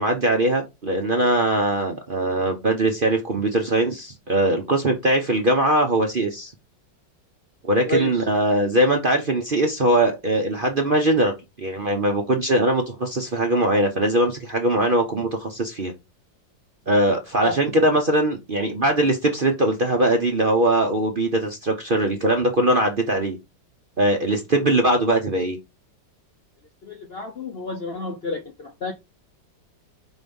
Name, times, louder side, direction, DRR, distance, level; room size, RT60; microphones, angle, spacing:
voice 1, 0.0-6.5 7.6-11.3 11.6-15.9 16.9-23.4 24.0-25.6, right 1 dB, 40° right, 0.7 m, -21 dB
voice 2, 7.8-8.2 17.4-17.6 26.8-28.9, left 3 dB, 55° left, 0.7 m, -29 dB
4.8 x 4.1 x 5.3 m
omnidirectional pair, 2.0 m